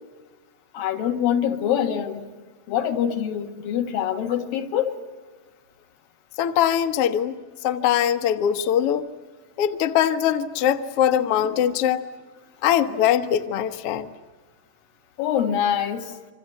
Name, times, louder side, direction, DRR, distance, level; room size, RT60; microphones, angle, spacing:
voice 1, 0.7-2.2 2.7-5.0 15.2-16.1, left 9 dB, 80° left, 4 dB, 3.5 m, -24 dB
voice 2, 6.4-7.3 7.6-9.1 9.6-12.0 12.6-14.1, left 10 dB, 60° left, 8 dB, 1.5 m, -22 dB
28.0 x 26.0 x 8.2 m, 1.3 s
omnidirectional pair, 4.0 m